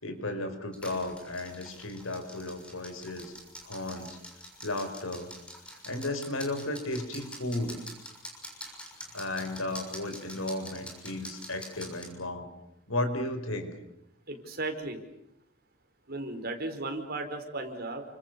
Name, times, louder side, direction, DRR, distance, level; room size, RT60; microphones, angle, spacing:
voice 1, 0.0-3.3 3.6-4.2 4.6-5.3 5.9-7.8 9.0-12.5 12.9-13.7, left 2 dB, 85° left, 8 dB, 5.2 m, -34 dB
sound 1, 0.7-12.1, equal, 5° left, 6.9 m, -46 dB
voice 2, 14.3-15.0 16.1-18.0, right 2 dB, 50° right, 6 dB, 4.8 m, -35 dB
30.0 x 26.0 x 7.0 m, 0.82 s
head